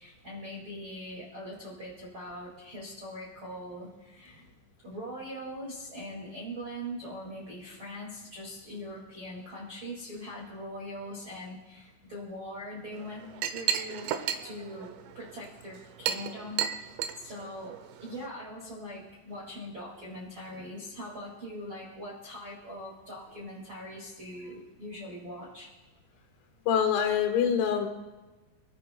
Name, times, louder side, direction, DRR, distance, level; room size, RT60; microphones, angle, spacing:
voice 1, 0.0-4.4 4.8-14.1 14.4-25.7, equal, 45° right, -4 dB, 1.6 m, -42 dB
Chink clink, 12.9-18.3, right 9 dB, 85° right, 2.5 m, -34 dB
voice 2, 26.7-27.9, left 8 dB, 85° left, 4 dB, 4.2 m, -25 dB
27.5 x 12.5 x 2.2 m, 1.2 s
omnidirectional pair, 6.0 m